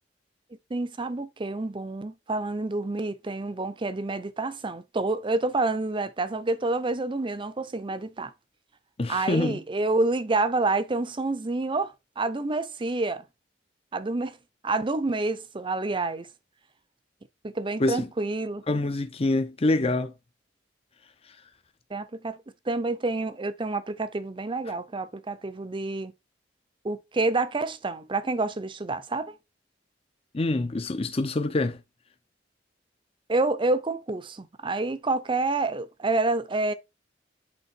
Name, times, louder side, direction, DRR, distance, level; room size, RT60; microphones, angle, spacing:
voice 1, 0.7-8.3 9.1-13.2 13.9-14.4 14.6-16.3 17.4-18.6 21.9-22.4 22.7-26.1 26.8-29.4 33.3-36.7, right 2 dB, 30° right, 0.6 m, -28 dB
voice 2, 9.0-9.6 17.8-18.1 18.7-20.1 30.3-31.8, left 2 dB, 35° left, 0.6 m, -25 dB
8.2 x 3.4 x 4.4 m
head